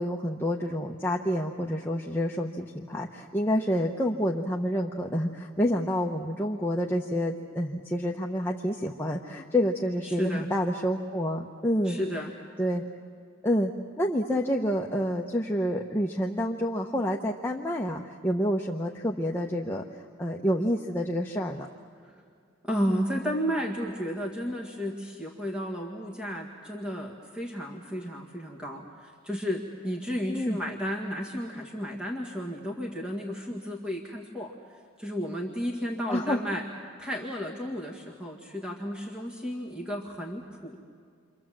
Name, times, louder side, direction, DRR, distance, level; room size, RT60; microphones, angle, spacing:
voice 1, 0.0-12.0 12.6-12.8 13.4-13.7 14.0-19.8 20.2-21.7 30.3-30.6 36.1-36.4, equal, 10° left, -1 dB, 1.0 m, -28 dB
voice 2, 10.0-10.5 11.8-12.3 22.0-22.2 22.6-36.6 37.0-40.8, equal, 5° right, -1 dB, 1.9 m, -33 dB
29.5 x 25.5 x 7.5 m, 2.3 s
head